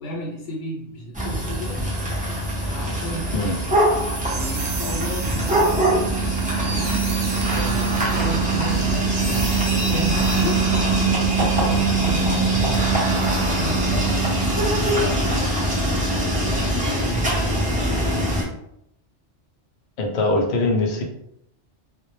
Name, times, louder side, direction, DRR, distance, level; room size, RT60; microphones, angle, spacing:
voice 1, 0.0-1.9 2.6-3.6 4.3-7.1 7.5-10.8 11.4-17.3, right 1 dB, 75° left, -2 dB, 0.8 m, -33 dB
sound 1, 1.1-18.4, right 2 dB, 15° right, 0.3 m, -22 dB
sound 2, 3.9-11.2, right 2 dB, 55° right, 0.7 m, -35 dB
sound 3, 6.1-14.1, right 3 dB, 90° right, 0.9 m, -36 dB
voice 2, 20.0-21.0, left 2 dB, 60° left, 1 dB, 0.5 m, -22 dB
2.1 x 2.0 x 3.0 m, 0.78 s
omnidirectional pair, 1.2 m